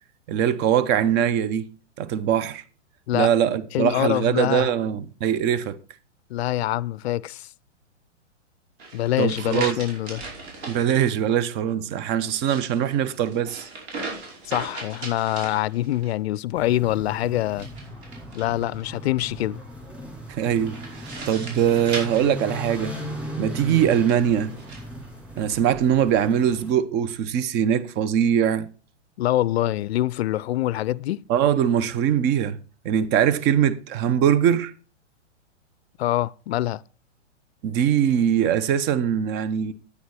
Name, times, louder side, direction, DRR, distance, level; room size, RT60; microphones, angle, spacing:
voice 1, 0.3-1.7 2.0-2.6 3.1-5.8 9.2-9.8 10.7-13.7 20.3-20.7 21.3-22.9 23.4-24.5 25.4-28.7 31.3-32.6 32.8-34.7 37.6-39.7, right 9 dB, 30° right, 0.8 m, -22 dB
voice 2, 3.7-4.7 6.3-7.5 8.9-10.2 14.5-17.7 18.3-19.6 29.2-31.2 36.0-36.8, left 15 dB, 60° left, 0.5 m, -25 dB
sound 1, 8.8-10.8 12.2-16.1 17.5-18.8 20.7-23.1 23.8-24.8, right 3 dB, 60° right, 5.1 m, -38 dB
sound 2, 16.5-26.7, equal, 5° right, 5.6 m, -37 dB
9.5 x 9.3 x 4.3 m
hypercardioid pair, 115°, 37 cm